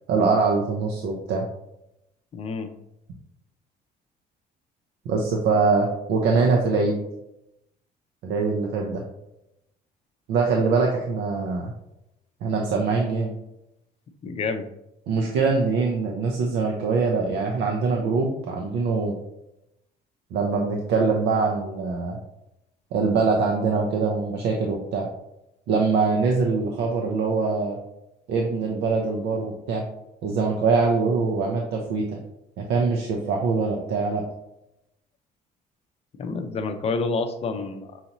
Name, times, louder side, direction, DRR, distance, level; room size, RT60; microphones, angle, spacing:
voice 1, 0.1-1.5 5.1-7.0 8.2-9.0 10.3-11.7 12.4-13.3 15.1-19.2 20.3-22.2 22.9-25.1 25.7-27.8 28.3-29.9 30.2-32.2 32.6-34.3, right 4 dB, 80° right, 0 dB, 0.6 m, -23 dB
voice 2, 2.3-2.7 14.2-14.7 36.2-38.0, left 4 dB, 35° left, 7 dB, 0.5 m, -28 dB
5.6 x 2.7 x 2.9 m, 0.86 s
cardioid pair, 110°, 17 cm